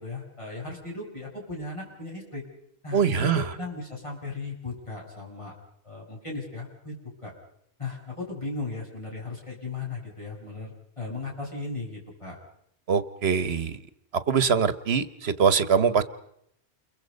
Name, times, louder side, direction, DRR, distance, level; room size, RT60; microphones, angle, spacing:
voice 1, 0.0-2.4 2.8-5.5 5.8-7.0 7.2-7.3 7.8-12.4, left 3 dB, 30° left, -2 dB, 7.1 m, -36 dB
voice 2, 2.9-3.5 12.9-13.8 14.3-16.0, right 6 dB, 70° right, 14 dB, 1.4 m, -23 dB
29.0 x 23.0 x 5.3 m, 0.74 s
omnidirectional pair, 1.1 m